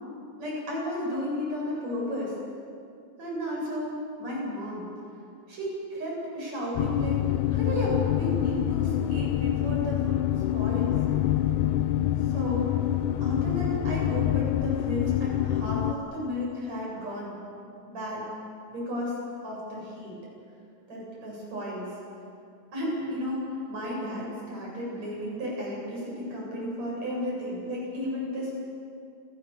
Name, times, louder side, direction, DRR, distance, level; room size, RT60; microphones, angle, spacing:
voice 1, 0.4-2.3 3.2-4.8 5.5-11.0 12.2-12.7 13.2-17.4 17.9-18.3 18.7-19.2 19.4-20.2 20.9-21.9 22.7-28.5, left 1 dB, 65° right, -4 dB, 9.0 m, -33 dB
sound 1, 6.8-15.9, left 12 dB, 90° left, 2.1 m, -26 dB
28.0 x 18.0 x 7.2 m, 2.5 s
omnidirectional pair, 3.3 m